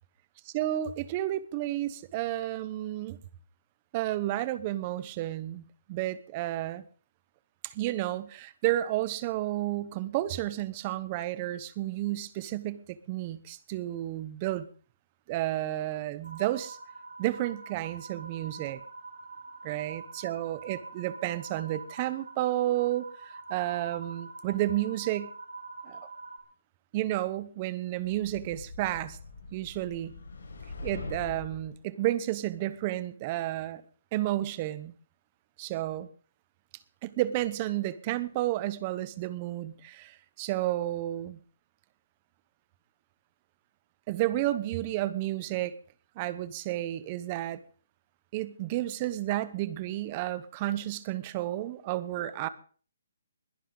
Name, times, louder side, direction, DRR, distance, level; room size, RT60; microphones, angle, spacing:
voice 1, 0.5-3.2 3.9-6.8 7.6-14.7 15.3-16.8 17.2-18.8 19.6-25.3 25.8-26.1 26.9-29.2 29.5-30.2 30.8-33.8 34.1-34.9 35.6-36.1 37.0-41.4 44.1-45.7 46.2-47.6 48.3-52.5, right 14 dB, 25° right, 16 dB, 0.8 m, -31 dB
sound 1, 16.2-26.4, right 3 dB, 85° right, 2.7 m, -45 dB
sound 2, 28.0-31.7, left 3 dB, 80° left, 5.5 m, -42 dB
21.0 x 11.0 x 3.9 m, 0.41 s
hypercardioid pair, 170°, 0 cm